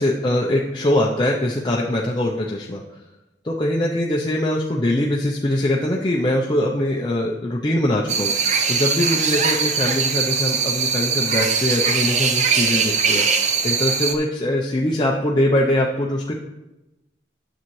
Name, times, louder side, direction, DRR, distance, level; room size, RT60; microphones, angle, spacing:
voice 1, 0.0-2.8 3.4-8.3 8.7-13.3 13.6-16.3, left 1 dB, 25° left, -2 dB, 0.5 m, -22 dB
sound 1, 8.1-14.1, right 5 dB, 40° right, 0.6 m, -21 dB
10.0 x 7.0 x 3.1 m, 1.0 s
head